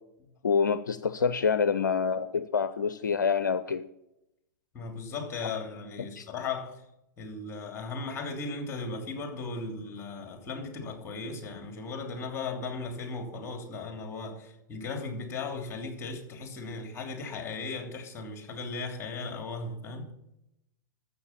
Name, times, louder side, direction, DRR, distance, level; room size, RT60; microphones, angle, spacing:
voice 1, 0.4-3.9 5.4-5.5 6.2-6.3, left 6 dB, 75° left, 0.6 m, -27 dB
voice 2, 4.7-6.8 7.2-20.2, left 3 dB, 25° left, 3.1 m, -37 dB
13.5 x 7.1 x 7.0 m
figure-of-eight pair, 100°, 10 cm